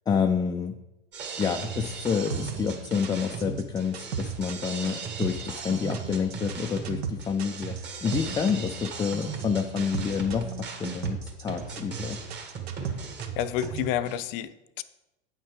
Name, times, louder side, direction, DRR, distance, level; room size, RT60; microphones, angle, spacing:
voice 1, 0.1-0.8 1.4-12.2, left 6 dB, 15° left, 5 dB, 0.4 m, -28 dB
sound 1, 1.1-14.2, right 5 dB, 35° right, 1.8 m, -37 dB
sound 2, 2.3-13.8, right 6 dB, 70° right, 1.2 m, -36 dB
voice 2, 13.4-14.8, left 11 dB, 55° left, 13 dB, 0.6 m, -30 dB
8.6 x 5.9 x 4.8 m, 0.96 s
hypercardioid pair, 90°, 32 cm